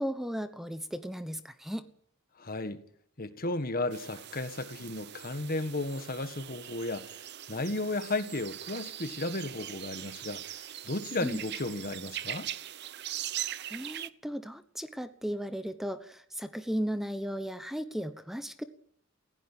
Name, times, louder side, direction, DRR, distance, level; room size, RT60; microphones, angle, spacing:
voice 1, 0.0-1.9 11.2-11.4 13.7-18.6, equal, ahead, 1.0 m, -35 dB
voice 2, 2.4-2.8 3.2-12.5, left 2 dB, 50° left, 1.6 m, -34 dB
sound 1, 3.9-14.1, right 12 dB, 60° right, 0.8 m, -41 dB
18.5 x 16.0 x 9.0 m
head